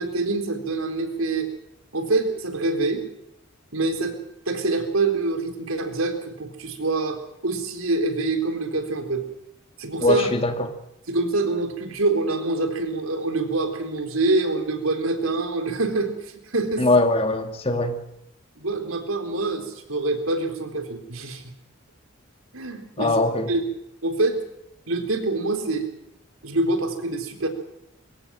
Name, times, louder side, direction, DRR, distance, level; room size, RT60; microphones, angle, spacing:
voice 1, 0.0-1.5 1.9-3.0 3.7-4.2 4.5-9.2 9.8-10.3 11.1-16.9 17.3-17.4 18.6-21.4 22.5-23.2 23.5-23.6 24.0-24.4 24.9-25.9 26.4-27.5, right 2 dB, 80° right, 6 dB, 4.1 m, -25 dB
voice 2, 10.0-10.7 16.8-18.0 23.0-23.5, left 2 dB, 30° left, 7 dB, 2.3 m, -21 dB
23.0 x 18.0 x 7.7 m, 0.81 s
head